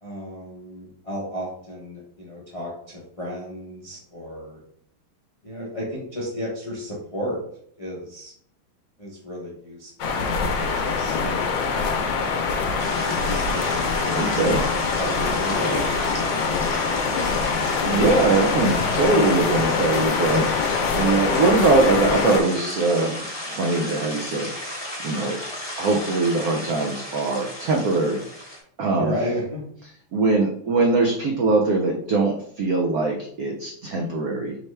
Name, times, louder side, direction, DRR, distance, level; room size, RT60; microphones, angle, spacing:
voice 1, 0.0-4.6 5.4-7.4 7.8-8.3 9.0-12.4 13.0-15.8 28.9-29.6, equal, 40° left, -5 dB, 0.4 m, -33 dB
sound 1, 10.0-22.4, left 5 dB, 70° left, 1.2 m, -24 dB
sound 2, 12.8-28.6, left 1 dB, 20° left, 0.8 m, -34 dB
voice 2, 14.2-14.6 17.8-20.5 21.0-25.4 25.8-28.5 28.8-29.1 30.1-34.6, right 3 dB, 85° right, 0 dB, 0.7 m, -22 dB
4.5 x 3.2 x 3.2 m, 0.64 s
omnidirectional pair, 2.3 m